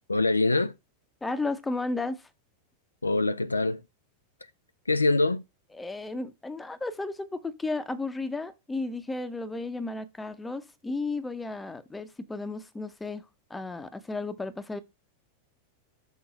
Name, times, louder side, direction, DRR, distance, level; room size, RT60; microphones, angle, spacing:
voice 1, 0.1-0.7 3.0-3.8 4.9-5.4, left 2 dB, 80° left, 0.3 m, -24 dB
voice 2, 1.2-2.2 5.7-13.2 13.5-14.8, left 3 dB, 10° left, 0.8 m, -33 dB
6.2 x 3.7 x 5.2 m
figure-of-eight pair, 90°, 0 cm